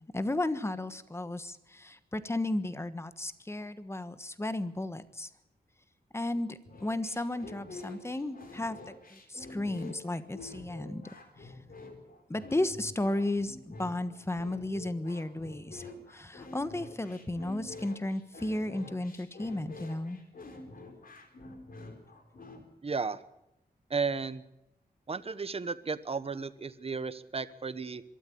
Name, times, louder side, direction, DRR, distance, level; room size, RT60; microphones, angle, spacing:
voice 1, 0.1-5.3 6.1-11.1 11.4-11.5 12.3-20.2, left 1 dB, 15° left, 12 dB, 1.3 m, -34 dB
sound 1, 6.6-22.6, left 2 dB, 60° left, 4.3 m, -48 dB
voice 2, 22.8-23.2 23.9-24.4 25.1-28.0, right 4 dB, 35° right, 14 dB, 1.1 m, -34 dB
23.5 x 13.0 x 8.6 m, 0.89 s
wide cardioid pair, 120°, 17 cm